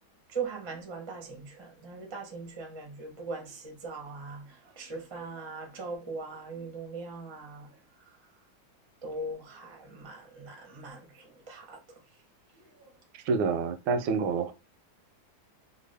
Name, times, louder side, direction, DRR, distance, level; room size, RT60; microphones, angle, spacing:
voice 1, 0.3-8.1 9.0-12.0 12.5-12.9, right 3 dB, 35° right, 0.4 m, -40 dB
voice 2, 13.1-14.5, right 5 dB, 85° right, 1.4 m, -28 dB
3.3 x 2.3 x 3.3 m
omnidirectional pair, 2.2 m